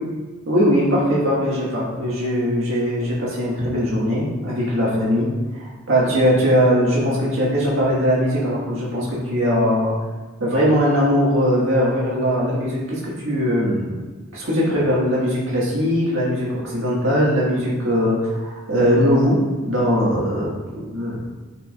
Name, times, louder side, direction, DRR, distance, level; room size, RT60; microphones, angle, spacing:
voice 1, 0.5-5.3 5.5-9.9 10.4-13.9 14.3-19.4 19.6-21.2, equal, 75° right, -7 dB, 1.8 m, -20 dB
9.8 x 4.8 x 2.5 m, 1.3 s
head